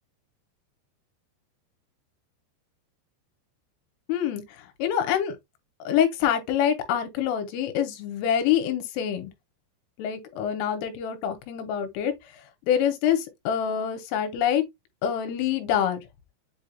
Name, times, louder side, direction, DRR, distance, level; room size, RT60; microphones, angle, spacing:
voice 1, 4.1-5.4 5.9-9.3 10.0-12.1 12.7-14.6 15.0-16.0, left 9 dB, 85° left, 3.3 m, -26 dB
8.0 x 2.8 x 2.2 m
omnidirectional pair, 5.9 m